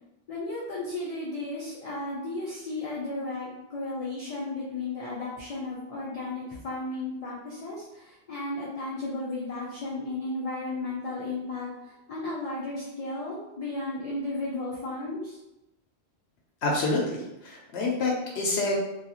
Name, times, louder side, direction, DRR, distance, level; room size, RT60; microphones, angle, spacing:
voice 1, 0.3-15.4, left 2 dB, 45° left, -7 dB, 0.5 m, -34 dB
voice 2, 16.6-18.7, left 2 dB, 75° left, -1 dB, 0.8 m, -27 dB
2.6 x 2.4 x 2.9 m, 0.92 s
omnidirectional pair, 1.1 m